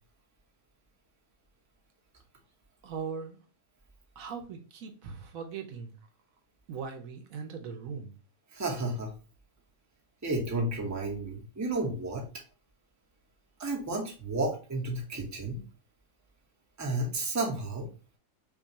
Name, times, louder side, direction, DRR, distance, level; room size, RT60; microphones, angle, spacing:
voice 1, 2.8-3.4 4.2-5.9 6.7-8.1, right 6 dB, 75° right, 5 dB, 1.0 m, -39 dB
voice 2, 8.5-9.1 10.2-12.2 13.6-15.6 16.8-17.9, right 2 dB, 15° right, -1 dB, 0.8 m, -32 dB
5.9 x 2.3 x 2.8 m, 0.35 s
omnidirectional pair, 1.5 m